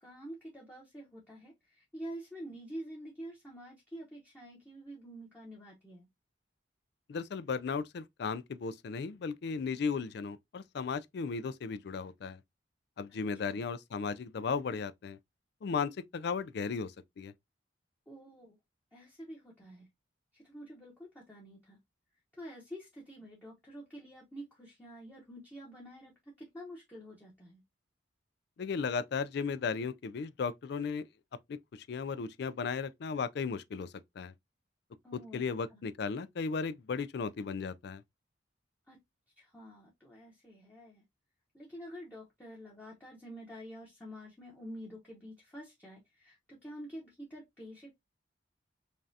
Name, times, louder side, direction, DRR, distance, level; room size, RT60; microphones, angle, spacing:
voice 1, 0.0-6.1 13.1-13.2 13.5-13.6 18.1-18.6 18.9-19.9 20.3-21.8 22.3-27.6 35.0-35.4 35.7-35.8 38.9-39.0 39.4-41.0 41.5-47.9, equal, 10° left, 1.0 m, -48 dB
voice 2, 7.1-12.4 13.0-15.2 15.6-17.3 28.6-31.1 31.5-34.3 35.1-38.0, left 5 dB, 60° left, 0.4 m, -36 dB
5.3 x 2.4 x 2.7 m
head